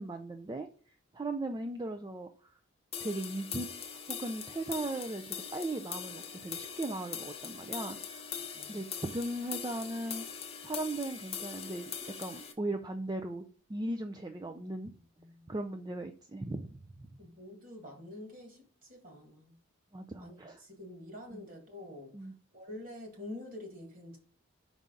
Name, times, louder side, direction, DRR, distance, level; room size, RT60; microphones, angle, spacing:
voice 1, 0.0-2.3 3.0-3.7 4.1-8.3 8.7-10.2 10.6-11.9 12.2-13.4 13.7-14.9 15.5-17.1 19.9-20.6 21.3-21.4 22.1-22.3, right 2 dB, 20° right, 0.4 m, -38 dB
sound 1, 2.9-12.5, left 7 dB, 30° left, 0.7 m, -42 dB
voice 2, 15.2-15.5 17.2-19.6 20.2-24.2, left 1 dB, 40° right, 1.8 m, -47 dB
5.4 x 4.7 x 3.8 m
head